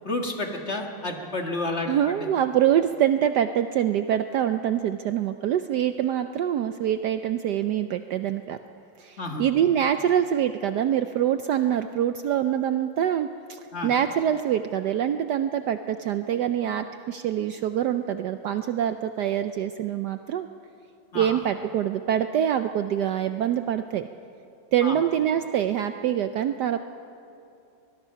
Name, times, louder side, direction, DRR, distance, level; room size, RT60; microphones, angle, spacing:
voice 1, 0.0-1.9 9.2-9.4 13.7-13.9 21.1-21.4 24.8-25.0, left 2 dB, 35° left, 2 dB, 1.8 m, -30 dB
voice 2, 1.9-8.6 9.0-20.5 21.1-24.1 24.7-26.8, right 10 dB, 70° right, 9 dB, 1.0 m, -25 dB
23.5 x 20.5 x 5.8 m, 2.7 s
omnidirectional pair, 2.2 m